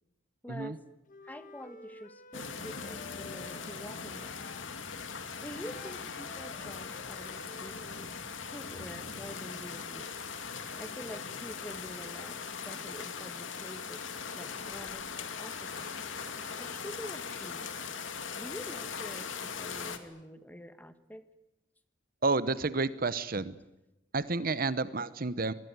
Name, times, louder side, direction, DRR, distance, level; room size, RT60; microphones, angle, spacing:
voice 1, 0.4-0.8 1.2-4.3 5.4-8.2 8.5-10.1 10.8-12.4 12.6-14.0 14.3-15.9 16.6-17.7 18.3-21.3, equal, 10° left, 11 dB, 1.4 m, -46 dB
Wind instrument woodwind instrument, 1.1-4.7 5.5-8.1, left 3 dB, 40° left, 1.5 m, -51 dB
sound 1, 2.3-20.0, left 5 dB, 75° left, 2.3 m, -40 dB
voice 2, 22.2-23.6 24.1-25.5, right 3 dB, 45° right, 15 dB, 0.9 m, -30 dB
25.5 x 20.5 x 9.5 m, 0.96 s
head